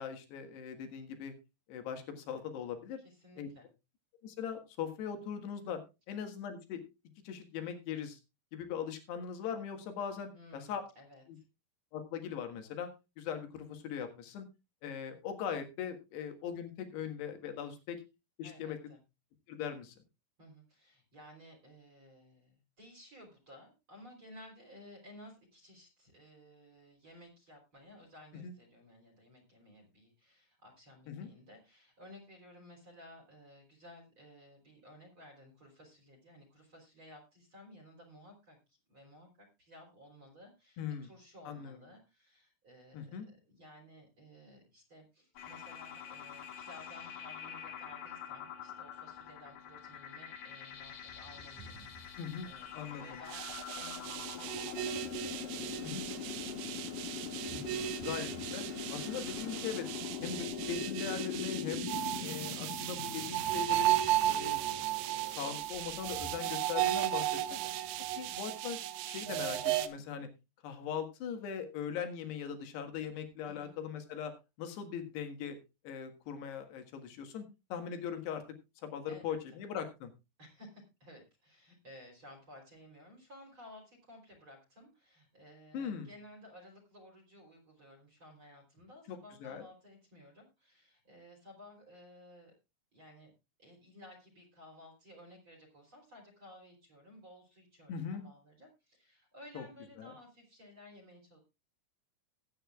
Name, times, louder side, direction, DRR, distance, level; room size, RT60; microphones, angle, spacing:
voice 1, 0.0-1.3 1.7-3.0 3.4-3.5 4.2-5.8 6.1-6.8 7.3-8.2 8.5-10.8 11.3-11.4 11.9-12.9 13.2-14.5 14.8-18.0 18.4-18.8 19.5-20.0 28.4-28.5 31.1-31.3 40.8-41.1 41.5-41.8 42.9-43.3 52.2-52.5 52.7-53.2 55.8-56.1 58.0-58.7 58.9-59.9 60.2-61.9 62.2-64.0 64.3-64.6 65.3-67.4 68.2-68.8 69.1-70.3 70.6-74.3 74.6-75.6 75.8-77.5 77.7-78.4 78.8-80.1 85.7-86.1 89.1-89.6 97.9-98.3 99.6-99.7 100.0-100.1, left 8 dB, 80° left, 6 dB, 3.7 m, -40 dB
voice 2, 3.0-3.7 10.3-11.4 18.4-19.0 20.4-53.4 53.7-57.3 64.2-64.5 67.4-67.7 73.4-73.7 79.1-79.6 80.4-92.5 92.9-93.3 93.6-101.4, left 1 dB, 30° right, 4 dB, 4.0 m, -56 dB
sound 1, 45.4-64.8, left 7 dB, 60° left, 3.4 m, -43 dB
sound 2, 50.7-66.3, right 2 dB, 45° right, 3.8 m, -57 dB
sound 3, 53.3-69.9, right 13 dB, 75° right, 2.1 m, -35 dB
20.0 x 8.9 x 2.3 m, 0.26 s
omnidirectional pair, 4.8 m